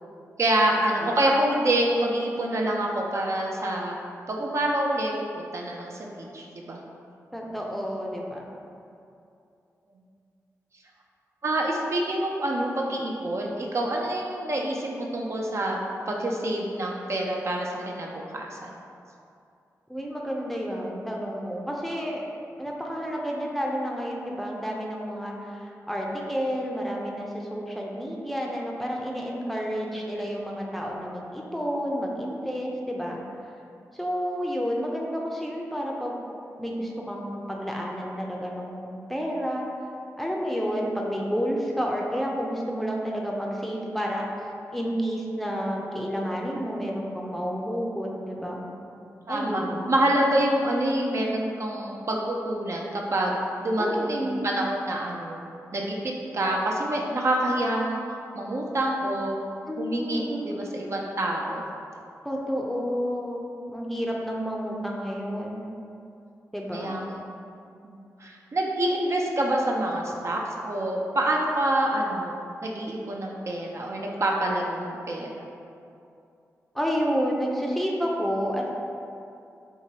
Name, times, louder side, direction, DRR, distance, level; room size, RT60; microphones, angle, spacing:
voice 1, 0.4-4.0 4.3-6.8 7.4-7.5 11.4-15.8 16.1-18.7 49.3-49.6 49.9-55.4 55.7-59.4 59.8-61.6 66.7-67.0 67.8-72.3 72.6-75.3, right 1 dB, 50° right, -1 dB, 0.5 m, -27 dB
voice 2, 7.3-8.6 19.9-22.2 22.6-33.2 34.0-36.2 36.6-39.7 40.2-44.3 44.7-48.7 49.3-49.9 53.8-54.5 59.6-60.6 62.2-65.6 66.5-67.1 76.7-78.7, equal, 5° left, -2 dB, 0.5 m, -30 dB
4.6 x 2.9 x 2.8 m, 2.5 s
cardioid pair, 70°, 6 cm